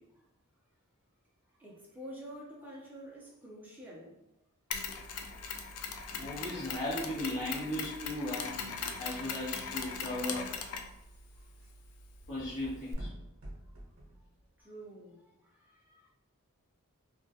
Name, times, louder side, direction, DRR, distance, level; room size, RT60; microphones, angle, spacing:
voice 1, 1.6-4.2 14.6-15.2 15.6-16.1, equal, 10° right, -4 dB, 0.5 m, -48 dB
Mechanisms, 4.7-12.9, left 6 dB, 90° left, 0.3 m, -40 dB
voice 2, 6.1-10.6 12.3-13.1, left 1 dB, 65° left, -10 dB, 0.7 m, -37 dB
sound 1, 10.8-14.6, right 1 dB, 65° right, 0.7 m, -50 dB
2.2 x 2.0 x 2.7 m, 0.87 s
head